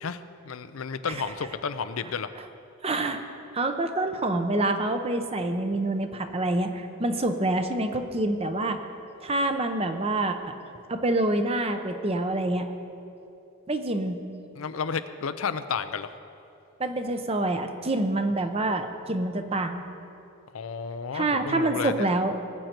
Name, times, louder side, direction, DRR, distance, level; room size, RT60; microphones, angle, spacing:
voice 1, 0.0-2.3 14.5-16.1 20.5-22.1, left 5 dB, 90° left, 11 dB, 0.6 m, -32 dB
voice 2, 2.8-3.2 3.5-8.8 9.2-10.4 10.9-12.7 13.7-14.2 16.8-19.8 21.1-22.4, right 2 dB, 30° right, 7 dB, 0.7 m, -26 dB
19.5 x 7.9 x 4.5 m, 2.7 s
head